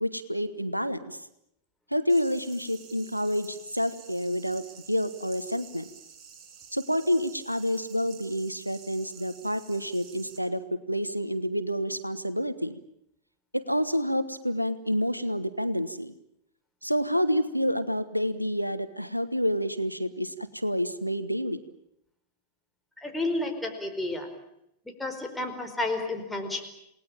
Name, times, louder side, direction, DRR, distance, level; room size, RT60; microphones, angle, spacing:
voice 1, 0.0-1.3 1.9-5.9 6.7-12.8 13.5-16.1 16.8-21.6, equal, 90° right, 14 dB, 1.3 m, -28 dB
sound 1, 2.1-10.4, right 7 dB, 30° right, 6.1 m, -50 dB
voice 2, 23.0-24.4 25.0-26.6, left 2 dB, 5° left, 4 dB, 4.7 m, -31 dB
28.5 x 19.5 x 8.9 m, 0.78 s
figure-of-eight pair, 90°, 0 cm